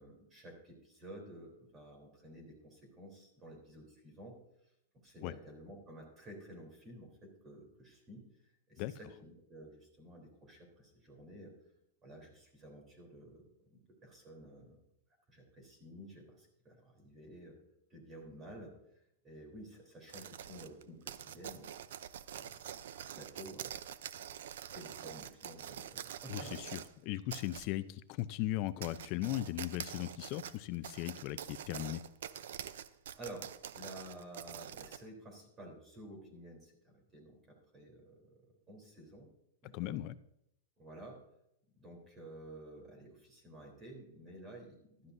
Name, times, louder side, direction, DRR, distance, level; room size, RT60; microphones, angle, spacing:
voice 1, 0.0-4.4 5.0-8.2 8.7-11.5 12.0-14.8 15.3-17.6 17.9-18.7 19.2-21.7 22.3-22.8 23.1-23.8 24.7-26.5 33.2-38.3 38.7-39.3 39.6-39.9 40.8-41.2 41.8-45.1, right 1 dB, 20° right, 2 dB, 3.6 m, -52 dB
sound 1, 20.1-26.9 27.3-27.7 28.2-28.3 28.7-35.0, right 9 dB, 75° right, 0.6 m, -46 dB
voice 2, 26.3-32.0 39.7-40.1, left 15 dB, 40° left, 15 dB, 0.5 m, -38 dB
15.5 x 12.5 x 2.7 m, 0.79 s
supercardioid pair, 150°, 0 cm